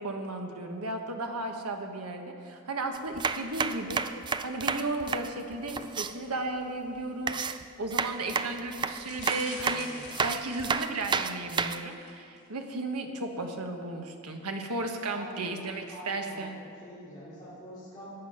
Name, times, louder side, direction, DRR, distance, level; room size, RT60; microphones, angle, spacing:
voice 1, 0.0-4.0 4.4-7.4 7.8-16.6, right 2 dB, 85° right, 4 dB, 1.3 m, -34 dB
sound 1, 2.9-6.1 7.3-11.8, right 5 dB, 20° right, 0.3 m, -31 dB
sound 2, 9.0-11.3 11.8-12.1 12.4-12.5, left 4 dB, 50° left, 3.0 m, -45 dB
voice 2, 9.6-10.3 15.1-18.1, equal, 20° left, -14 dB, 3.4 m, -46 dB
14.5 x 9.1 x 5.6 m, 2.4 s
head